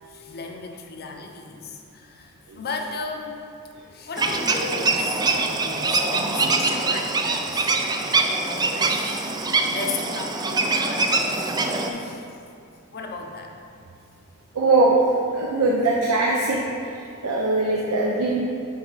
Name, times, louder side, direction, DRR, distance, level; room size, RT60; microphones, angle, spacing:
voice 1, 0.1-3.4 3.9-7.8 8.4-11.4 11.6-12.3 12.9-13.5, left 4 dB, 45° left, 2 dB, 0.7 m, -35 dB
sound 1, 4.2-11.9, right 3 dB, 20° right, 0.4 m, -23 dB
voice 2, 14.5-15.1 15.3-18.3, right 2 dB, 75° right, -3 dB, 0.7 m, -22 dB
7.8 x 4.7 x 4.0 m, 2.5 s
head